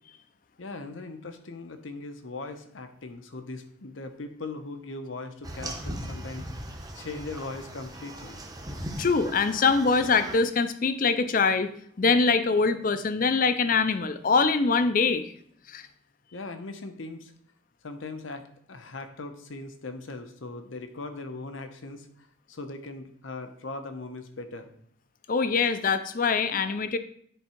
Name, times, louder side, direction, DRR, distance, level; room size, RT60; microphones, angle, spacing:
voice 1, 0.6-6.5 6.9-8.4 16.3-17.3 17.8-24.7 26.6-26.8, left 3 dB, 80° left, 8 dB, 0.9 m, -39 dB
sound 1, 5.4-10.4, right 1 dB, 20° right, 0.8 m, -38 dB
voice 2, 9.0-11.7 12.0-15.2 15.7-15.9 25.3-27.0, left 4 dB, 45° left, 11 dB, 0.5 m, -23 dB
10.0 x 3.6 x 4.4 m, 0.64 s
head